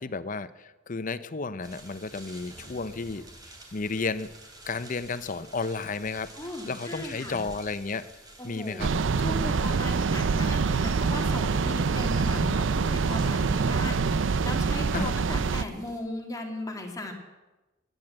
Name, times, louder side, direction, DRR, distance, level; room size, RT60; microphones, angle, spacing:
voice 1, 0.0-3.3 3.7-4.3 4.7-6.3 6.7-8.1 8.4-8.9 14.9-15.1, left 4 dB, 40° left, 14 dB, 0.7 m, -32 dB
sound 1, 1.6-16.0, right 2 dB, 20° right, 3.0 m, -50 dB
voice 2, 6.3-7.4 8.4-17.1, left 1 dB, 20° left, 2 dB, 2.2 m, -37 dB
sound 2, 8.8-15.6, right 4 dB, 70° right, 0.5 m, -25 dB
16.5 x 11.0 x 7.6 m, 1.1 s
head